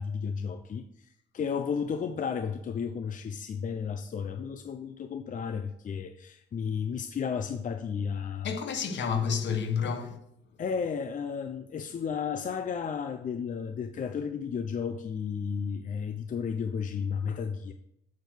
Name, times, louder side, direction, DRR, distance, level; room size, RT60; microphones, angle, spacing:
voice 1, 0.0-8.5 10.0-10.1 10.6-17.7, left 6 dB, 40° left, 0.5 m, -33 dB
voice 2, 8.4-10.2, left 6 dB, 65° left, 1.1 m, -29 dB
8.2 x 4.5 x 6.5 m
cardioid pair, 90°, 20 cm